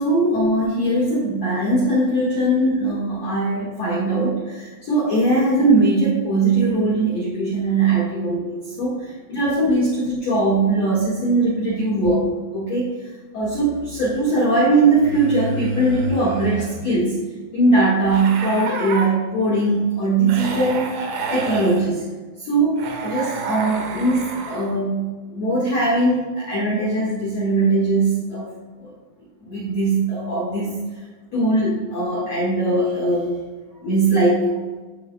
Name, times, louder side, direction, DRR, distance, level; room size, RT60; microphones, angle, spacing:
voice 1, 0.0-12.3 12.5-12.9 13.3-17.2 17.5-21.0 21.3-22.0 22.4-22.8 23.0-28.5 28.8-28.9 29.4-30.8 31.3-33.4 33.8-34.5, right 2 dB, 70° left, -6 dB, 1.5 m, -20 dB
sound 1, 13.4-14.0 15.0-16.9 18.0-19.1 20.3-21.9 22.8-24.8, right 3 dB, 70° right, 2.6 m, -30 dB
13.5 x 7.0 x 2.3 m, 1.3 s
omnidirectional pair, 5.9 m